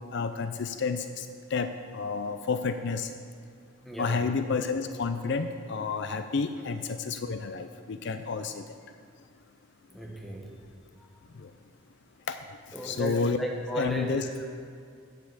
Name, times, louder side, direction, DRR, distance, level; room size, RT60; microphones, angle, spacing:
voice 1, 0.1-3.1 4.0-8.8 11.3-11.5 12.3-12.4 12.8-13.4 13.8-14.3, left 4 dB, 60° left, 9 dB, 0.5 m, -30 dB
voice 2, 3.8-4.2 6.5-6.6 9.9-10.5 12.7-14.3, equal, ahead, -2 dB, 1.4 m, -35 dB
8.8 x 8.1 x 7.2 m, 2.3 s
head